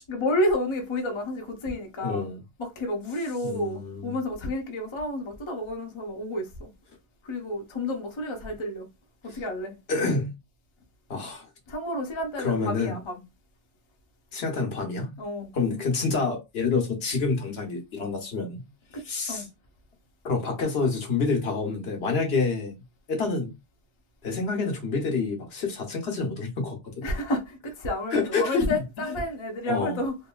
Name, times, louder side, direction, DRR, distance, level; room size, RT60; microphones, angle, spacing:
voice 1, 0.1-2.3 2.6-6.7 7.2-8.9 9.2-9.8 11.7-13.2 15.2-15.5 18.9-19.5 23.2-23.3 27.0-30.2, left 1 dB, 30° left, 0.7 m, -30 dB
voice 2, 2.0-2.4 3.4-4.2 9.9-10.3 11.1-11.5 12.4-13.0 14.3-15.1 15.5-18.6 19.0-19.4 20.2-22.7 23.1-23.5 24.2-27.0 28.1-29.1 29.7-30.0, left 4 dB, 65° left, 1.0 m, -28 dB
3.0 x 2.6 x 2.2 m
omnidirectional pair, 1.2 m